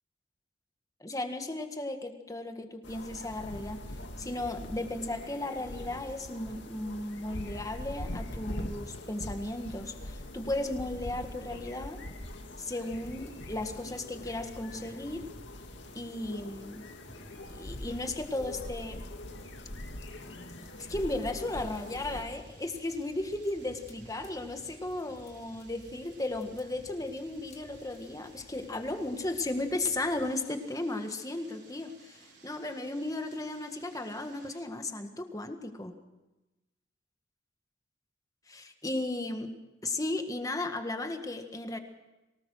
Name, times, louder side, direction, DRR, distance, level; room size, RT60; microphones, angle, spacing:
voice 1, 1.0-3.8 4.2-12.0 12.6-15.2 15.9-16.9 17.5-19.0 20.9-35.9 38.5-39.5 39.8-41.8, left 2 dB, 20° left, 6 dB, 1.7 m, -35 dB
sound 1, 2.8-22.3, left 1 dB, 80° left, 2.0 m, -42 dB
sound 2, 12.9-30.3, equal, 40° left, 2.1 m, -55 dB
sound 3, 21.5-34.6, right 4 dB, 65° right, 4.5 m, -59 dB
24.0 x 18.5 x 6.4 m, 1.0 s
head